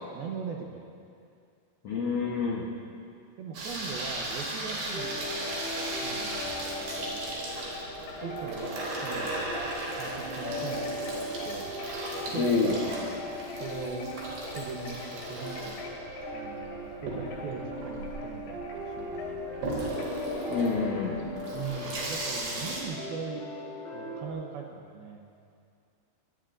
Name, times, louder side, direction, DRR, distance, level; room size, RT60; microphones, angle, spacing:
voice 1, 0.2-0.8 3.4-5.5 6.0-7.3 8.2-9.5 10.0-11.8 12.3-13.3 13.6-14.1 14.5-15.8 16.3-19.8 21.5-23.5 23.9-25.2, right 6 dB, 75° right, 1 dB, 2.5 m, -40 dB
voice 2, 1.8-2.7 12.3-12.8 20.5-21.2, left 4 dB, 90° left, -3 dB, 1.4 m, -27 dB
Water tap faucet / Sink (filling or washing), 3.5-22.8, right 1 dB, 90° right, 5.7 m, -37 dB
sound 1, 4.9-24.3, left 1 dB, 40° left, 3.4 m, -40 dB
Wind chime, 5.3-5.9 6.3-20.9, left 4 dB, 75° left, 4.4 m, -44 dB
24.0 x 20.0 x 2.6 m, 2.4 s
omnidirectional pair, 4.9 m